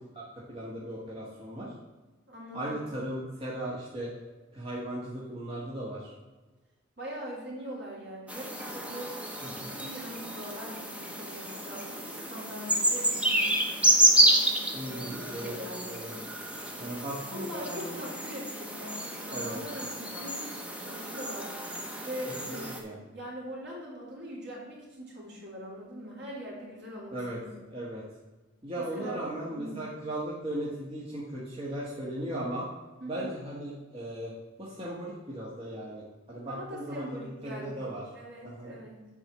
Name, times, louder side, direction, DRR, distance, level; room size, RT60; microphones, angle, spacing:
voice 1, 0.5-1.7 2.5-4.1 4.5-6.1 9.6-9.8 14.7-15.5 15.9-16.1 16.8-17.9 19.3-19.6 22.5-23.0 27.1-27.4 27.7-28.0 28.6-32.7 33.1-34.3 34.6-38.0 38.4-38.7, right 1 dB, 30° right, -6 dB, 1.5 m, -37 dB
voice 2, 2.3-2.8 7.0-13.8 14.9-16.0 17.3-21.5 22.0-27.5 28.8-29.2 29.6-29.8 33.0-33.3 36.4-39.0, equal, 55° right, -4 dB, 3.2 m, -42 dB
sound 1, 8.3-22.8, right 1 dB, 5° right, 0.9 m, -29 dB
7.5 x 4.7 x 7.2 m, 1.2 s
head